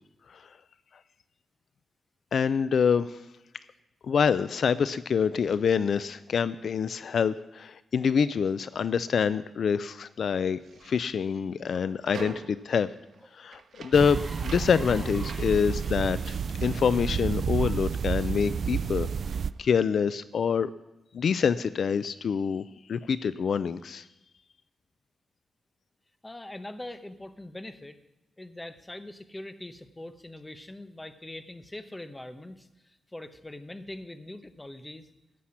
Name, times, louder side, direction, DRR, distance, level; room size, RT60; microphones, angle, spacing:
voice 1, 2.3-3.2 4.0-12.9 13.3-19.1 19.6-20.7 21.1-22.6 22.9-24.0, left 6 dB, 65° left, 15 dB, 0.4 m, -26 dB
sound 1, 10.5-18.0 18.2-19.7, right 6 dB, 80° right, 1.1 m, -48 dB
sound 2, 13.2-13.3 13.7-16.1 16.8-17.0, right 2 dB, 10° right, 2.1 m, -47 dB
sound 3, 13.9-19.5, right 6 dB, 55° right, 0.4 m, -30 dB
voice 2, 26.2-28.0 28.4-35.1, left 1 dB, 15° left, 10 dB, 0.9 m, -42 dB
14.5 x 5.8 x 9.8 m, 0.96 s
wide cardioid pair, 140°, 0 cm